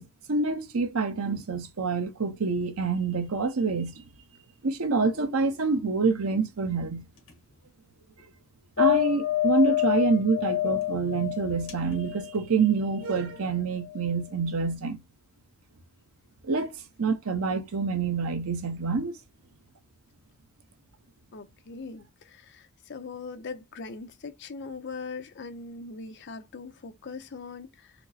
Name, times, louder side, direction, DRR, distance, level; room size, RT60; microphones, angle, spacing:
voice 1, 0.0-4.0 4.6-7.1 8.8-15.0 16.4-19.1, right 4 dB, 85° right, 0.8 m, -27 dB
sound 1, 5.1-5.6 7.2-7.4 8.8-13.2 13.8-14.1, left 14 dB, 70° left, 1.2 m, -28 dB
voice 2, 21.3-27.9, left 4 dB, 55° left, 0.6 m, -41 dB
4.3 x 2.0 x 2.6 m
head